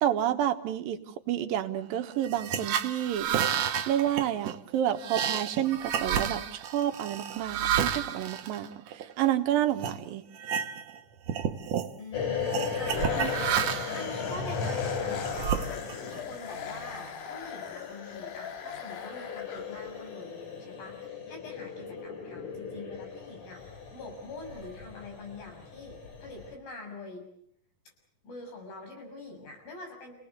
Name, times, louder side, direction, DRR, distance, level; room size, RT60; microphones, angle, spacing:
voice 1, 0.0-1.0 1.3-3.4 3.9-8.7 9.2-10.2 13.2-13.3, right 11 dB, 80° right, 8 dB, 3.0 m, -29 dB
sound 1, 2.2-9.3 9.8-10.0 10.4-11.0 11.2-11.9 12.5-14.0 14.6-16.2, right 9 dB, 60° right, 2.1 m, -31 dB
voice 2, 12.0-27.3 28.2-30.1, left 2 dB, 90° left, 2 dB, 8.4 m, -45 dB
sound 2, 12.1-26.5, left 5 dB, 55° left, 4.3 m, -37 dB
sound 3, 12.9-20.1, left 7 dB, 70° left, 3.1 m, -39 dB
29.0 x 19.0 x 8.1 m, 0.67 s
omnidirectional pair, 4.0 m